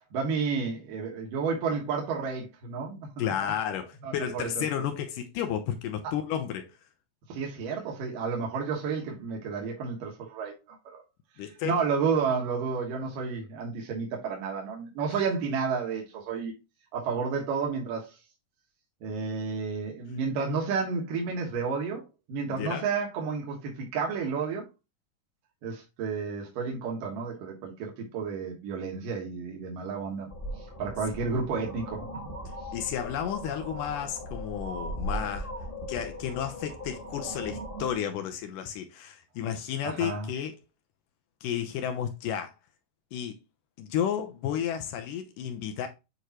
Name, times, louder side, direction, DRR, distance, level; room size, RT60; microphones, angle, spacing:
voice 1, 0.1-3.1 4.0-4.9 7.3-11.0 11.6-16.5 16.9-18.1 19.0-24.6 25.6-30.3 30.8-32.1 39.8-40.3, right 5 dB, 75° right, 3.1 m, -31 dB
voice 2, 3.2-6.7 11.4-11.8 22.5-22.9 32.7-35.5 35.9-40.5 41.4-42.5 43.1-43.4 43.8-45.9, left 9 dB, 80° left, 2.2 m, -32 dB
sound 1, 30.3-37.9, equal, 20° left, 1.7 m, -38 dB
7.9 x 4.7 x 2.9 m
omnidirectional pair, 3.9 m